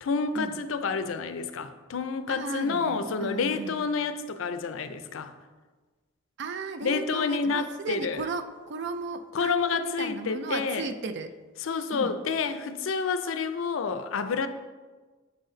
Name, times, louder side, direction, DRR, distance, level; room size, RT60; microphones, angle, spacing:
voice 1, 0.0-5.3 6.8-8.2 9.3-10.8 11.6-14.5, left 5 dB, 70° left, 10 dB, 0.5 m, -29 dB
voice 2, 2.3-3.8 6.4-11.3 11.9-12.2, right 4 dB, 60° right, 9 dB, 0.4 m, -35 dB
8.1 x 4.1 x 3.9 m, 1.3 s
head